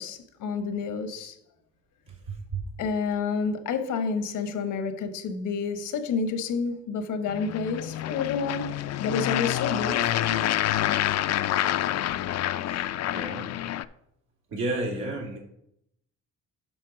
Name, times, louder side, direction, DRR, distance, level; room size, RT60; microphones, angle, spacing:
voice 1, 0.0-1.3 2.8-10.4, left 5 dB, 85° left, 8 dB, 1.2 m, -29 dB
voice 2, 2.3-2.7 12.7-13.6 14.5-15.4, right 2 dB, 85° right, -1 dB, 2.6 m, -32 dB
sound 1, 7.3-13.9, left 12 dB, 60° left, 0.4 m, -27 dB
7.6 x 5.6 x 5.2 m, 0.78 s
cardioid pair, 90°, 30 cm